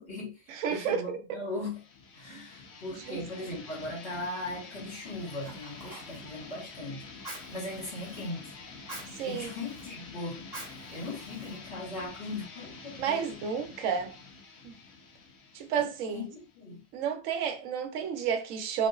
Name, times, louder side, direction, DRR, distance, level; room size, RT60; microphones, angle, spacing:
voice 1, 0.0-1.8 2.1-7.1 7.5-8.5 9.2-13.3 15.7-16.8, left 2 dB, 50° left, 2.0 m, -39 dB
voice 2, 0.6-1.2 2.3-2.4 3.1-3.2 9.2-9.5 13.0-14.1 14.6-14.7 15.5-16.3 16.9-18.9, right 7 dB, 70° right, 1.0 m, -31 dB
sound 1, 1.6-17.0, left 4 dB, 75° left, 1.1 m, -48 dB
Fire, 4.9-12.1, right 1 dB, 30° right, 1.2 m, -49 dB
3.0 x 2.8 x 2.4 m
omnidirectional pair, 1.5 m